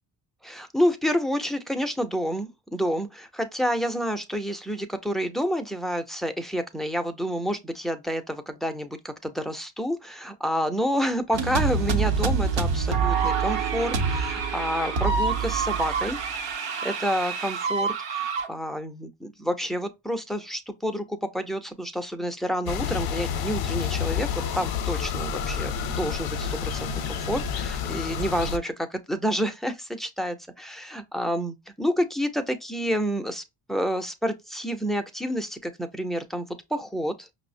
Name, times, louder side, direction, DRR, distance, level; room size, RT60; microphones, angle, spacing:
voice 1, 0.4-16.2 16.8-24.3 24.5-33.4 33.7-37.3, equal, ahead, 0.4 m, -29 dB
sound 1, 11.3-18.5, right 5 dB, 70° right, 0.8 m, -26 dB
sound 2, 22.7-28.6, left 7 dB, 55° left, 0.6 m, -29 dB
5.4 x 2.1 x 2.5 m
cardioid pair, 120°, 45 cm